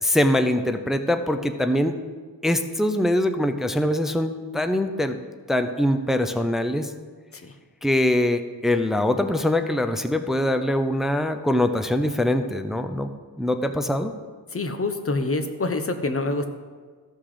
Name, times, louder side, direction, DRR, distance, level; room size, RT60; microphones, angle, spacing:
voice 1, 0.0-1.9 2.4-5.2 5.5-6.9 7.8-13.1 13.4-14.1, left 1 dB, ahead, 7 dB, 0.5 m, -23 dB
voice 2, 14.5-16.4, left 2 dB, 35° left, 7 dB, 0.9 m, -26 dB
14.5 x 5.8 x 4.9 m, 1.5 s
wide cardioid pair, 125°, 41 cm